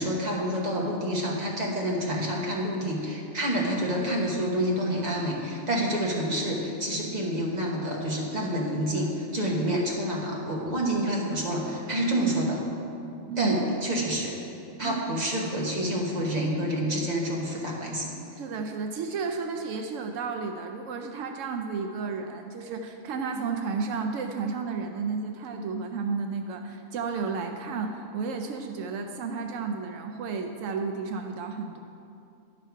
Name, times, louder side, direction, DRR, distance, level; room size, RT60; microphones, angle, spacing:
voice 1, 0.0-12.6 13.4-14.4 14.8-18.1, right 1 dB, 35° right, -2 dB, 1.3 m, -28 dB
voice 2, 13.3-13.6 14.8-15.0 18.3-31.8, right 5 dB, 80° right, 4 dB, 0.9 m, -32 dB
10.5 x 5.6 x 4.6 m, 2.6 s
omnidirectional pair, 1.3 m